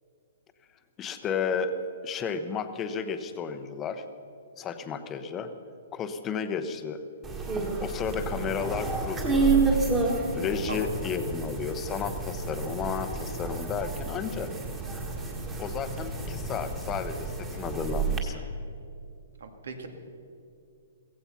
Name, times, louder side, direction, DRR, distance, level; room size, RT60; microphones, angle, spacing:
voice 1, 1.0-1.7 2.0-4.0 4.6-5.5 5.9-7.0 7.8-9.5 10.3-14.5 15.6-18.4, left 6 dB, 15° left, 9 dB, 0.8 m, -32 dB
sound 1, 7.2-18.2, right 3 dB, 15° right, 1.7 m, -30 dB
voice 2, 19.4-19.9, right 4 dB, 80° right, 6 dB, 2.2 m, -37 dB
16.0 x 15.5 x 5.7 m, 2.6 s
hypercardioid pair, 165°, 0 cm